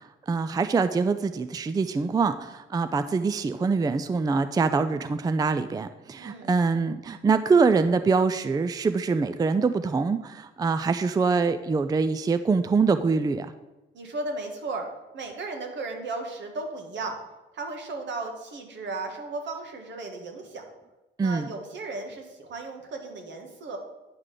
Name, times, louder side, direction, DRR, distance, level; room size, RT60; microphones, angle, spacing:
voice 1, 0.0-13.5 21.2-21.5, right 4 dB, 20° right, 11 dB, 0.4 m, -24 dB
voice 2, 6.2-6.5 13.9-14.9 15.1-17.2 17.5-20.6 21.2-23.8, right 3 dB, 65° right, 4 dB, 1.5 m, -35 dB
9.6 x 3.7 x 6.6 m, 1.1 s
cardioid pair, 90°, 20 cm